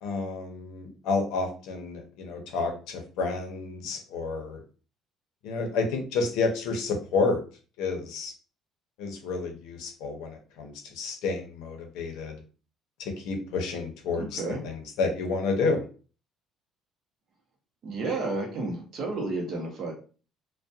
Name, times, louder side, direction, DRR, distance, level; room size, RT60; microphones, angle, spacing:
voice 1, 0.0-4.6 5.4-7.4 7.8-8.3 9.0-12.4 13.0-15.8, left 4 dB, 85° left, 4 dB, 0.7 m, -30 dB
voice 2, 14.2-14.6 17.8-19.9, right 3 dB, 40° right, 1 dB, 0.7 m, -31 dB
2.3 x 2.1 x 2.6 m, 0.37 s
cardioid pair, 175°, 0 cm